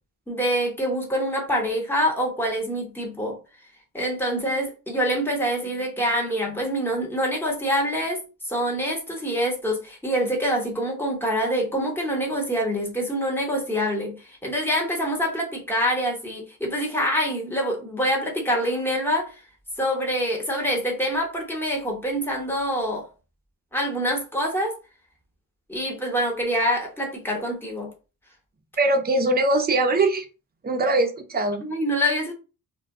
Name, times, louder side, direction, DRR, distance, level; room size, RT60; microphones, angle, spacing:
voice 1, 0.3-3.4 3.9-19.4 19.8-23.0 23.7-24.7 25.7-27.9 31.6-32.3, equal, 5° left, 1.0 m, -25 dB
voice 2, 28.8-30.3 30.6-31.7, right 2 dB, 25° right, 0.6 m, -22 dB
2.2 x 2.2 x 3.6 m
cardioid pair, 105°, 36 cm